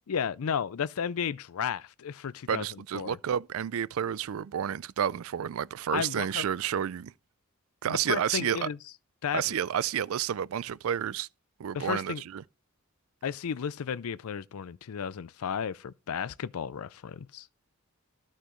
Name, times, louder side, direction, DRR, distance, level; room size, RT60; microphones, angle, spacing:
voice 1, 0.1-2.7 2.9-3.2 5.9-6.4 7.9-8.8 9.2-9.4 11.7-12.2 13.2-17.5, left 7 dB, 80° left, 0.4 m, -33 dB
voice 2, 2.5-7.1 7.8-8.7 9.3-11.3 11.6-12.4, right 9 dB, 70° right, 0.4 m, -30 dB
13.5 x 6.3 x 3.1 m
head